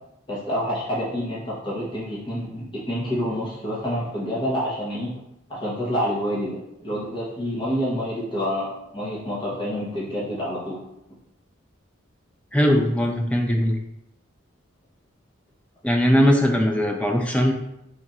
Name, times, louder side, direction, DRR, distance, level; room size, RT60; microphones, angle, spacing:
voice 1, 0.3-5.1 5.5-8.7 8.9-10.8, equal, 25° left, -8 dB, 0.8 m, -28 dB
voice 2, 12.5-13.8 15.8-17.5, equal, 5° left, 2 dB, 0.4 m, -20 dB
3.7 x 2.4 x 4.1 m, 0.81 s
head